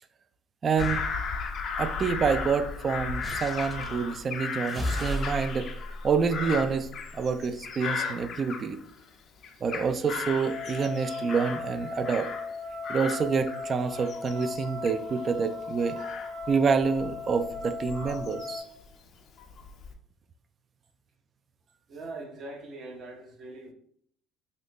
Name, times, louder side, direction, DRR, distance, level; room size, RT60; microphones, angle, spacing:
voice 1, 0.6-1.0 1.8-5.7 6.0-6.9 7.1-8.8 9.6-12.3 12.9-16.0 16.5-18.6, right 5 dB, 40° right, 10 dB, 0.3 m, -27 dB
Bird vocalization bird call bird song / Crow, 0.8-9.1 9.4-12.6 12.8-18.9 19.4-19.9, left 5 dB, 55° left, 0.5 m, -36 dB
sound 1, 0.8-1.1 3.2-3.9 4.7-7.3, equal, 10° right, 0.7 m, -35 dB
sound 2, 10.4-18.6, left 4 dB, 90° right, 0.8 m, -38 dB
voice 2, 21.9-23.7, right 2 dB, 55° right, 2 dB, 0.8 m, -41 dB
2.7 x 2.6 x 3.5 m, 0.65 s
supercardioid pair, 75°, 0 cm